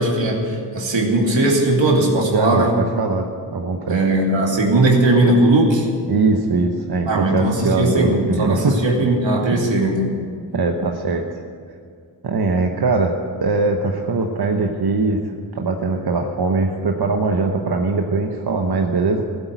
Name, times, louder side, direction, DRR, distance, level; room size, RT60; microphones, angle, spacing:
voice 1, 0.0-2.7 3.9-5.9 7.1-10.2, right 2 dB, 85° right, 0 dB, 2.6 m, -18 dB
voice 2, 2.3-4.0 6.1-8.8 10.5-11.2 12.2-13.1 13.4-19.2, right 3 dB, 60° right, 3 dB, 1.1 m, -21 dB
15.5 x 8.3 x 9.4 m, 2.2 s
wide cardioid pair, 65°, 44 cm